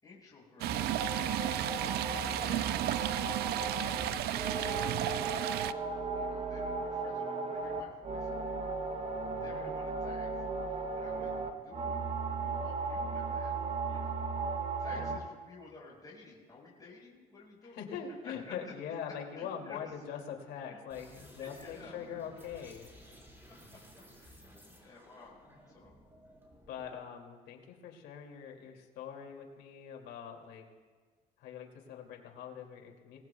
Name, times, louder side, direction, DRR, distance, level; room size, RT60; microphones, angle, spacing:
voice 1, 0.0-1.1 1.4-3.3 4.1-8.7 9.4-10.3 10.6-17.8 18.2-18.7 19.3-19.9 20.7-20.8 21.4-22.2 23.7-25.4 25.7-26.0, left 3 dB, 20° left, -4 dB, 4.8 m, -54 dB
sound 1, 0.6-15.2, right 4 dB, 40° right, 1.8 m, -36 dB
Stream, 0.6-5.7, right 13 dB, 70° right, 0.4 m, -33 dB
voice 2, 9.3-9.7 14.9-15.1 17.7-22.9 24.6-24.8 26.7-30.6 31.4-33.2, left 7 dB, 85° left, 2 dB, 2.5 m, -43 dB
sound 2, 20.9-27.1, equal, 15° right, 4.2 m, -56 dB
27.0 x 18.5 x 2.3 m, 1.5 s
cardioid pair, 110°, 17 cm